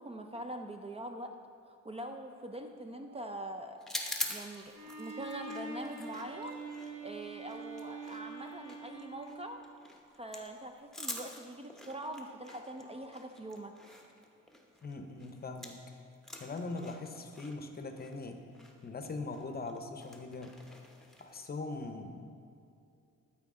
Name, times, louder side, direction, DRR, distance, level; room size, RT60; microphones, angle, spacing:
voice 1, 0.0-1.3 1.7-3.8 4.3-9.6 10.2-13.7, right 1 dB, 20° right, 5 dB, 0.4 m, -43 dB
Alarm, 2.1-5.8 6.5-10.2 10.9-14.1, right 1 dB, 80° right, 1.7 m, -62 dB
sound 1, 3.8-15.9 16.1-21.4, left 1 dB, ahead, 0.9 m, -46 dB
Bowed string instrument, 4.7-9.8, right 3 dB, 65° right, 1.5 m, -45 dB
voice 2, 14.8-15.9 16.4-18.4 18.8-20.6 21.2-22.2, left 3 dB, 30° left, 6 dB, 0.7 m, -41 dB
12.5 x 4.5 x 3.7 m, 2.5 s
cardioid pair, 90°, 30 cm